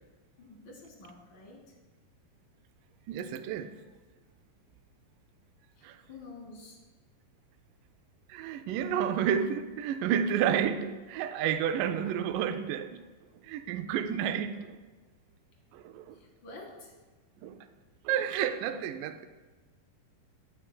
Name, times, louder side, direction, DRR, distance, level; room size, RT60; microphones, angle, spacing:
voice 1, 0.4-1.8 5.7-6.8 16.1-16.9, left 3 dB, 55° left, -2 dB, 1.2 m, -49 dB
voice 2, 3.1-3.8 5.8-6.0 8.3-13.0 13.4-14.8 15.7-16.2 17.4-17.6 18.1-19.3, right 8 dB, 85° right, 9 dB, 1.9 m, -30 dB
14.5 x 5.6 x 2.2 m, 1.3 s
omnidirectional pair, 4.3 m